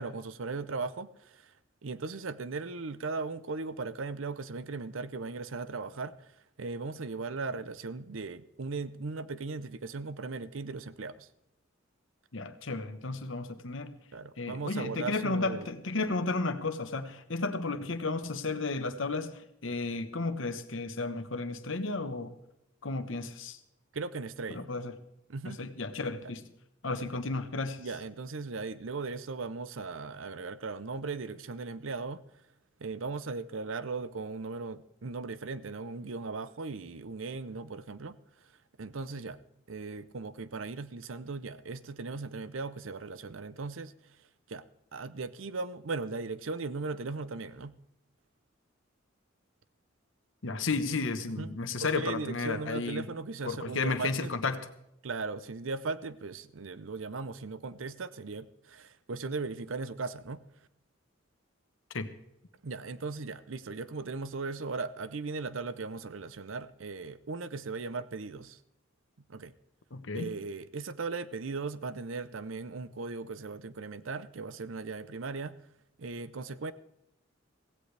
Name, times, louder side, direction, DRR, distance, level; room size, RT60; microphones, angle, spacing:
voice 1, 0.0-1.5 1.8-11.3 14.1-15.7 23.9-24.7 25.3-25.6 26.2-26.3 26.9-27.1 27.8-32.2 32.8-38.2 38.8-39.4 39.7-43.9 44.5-44.6 44.9-47.8 51.3-51.5 51.8-54.3 55.0-60.4 62.6-68.6 69.3-69.5 70.1-75.6 76.0-76.7, right 4 dB, 80° right, 0.7 m, -38 dB
voice 2, 12.3-13.9 14.4-22.4 22.8-23.6 24.5-24.9 25.4-26.4 26.8-27.8 50.4-53.0 53.4-54.6 61.9-62.1 69.9-70.3, left 3 dB, 70° left, 1.2 m, -33 dB
16.5 x 16.5 x 3.4 m
head